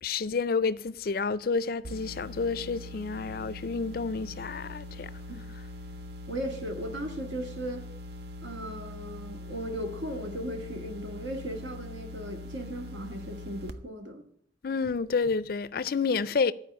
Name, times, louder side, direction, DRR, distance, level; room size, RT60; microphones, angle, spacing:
voice 1, 0.0-5.1 14.6-16.5, left 4 dB, 50° left, 0.4 m, -29 dB
sound 1, 1.8-13.7, left 1 dB, 60° right, 0.7 m, -42 dB
voice 2, 6.3-7.8 8.4-14.2, equal, 80° right, 1.9 m, -37 dB
13.0 x 4.8 x 8.6 m
head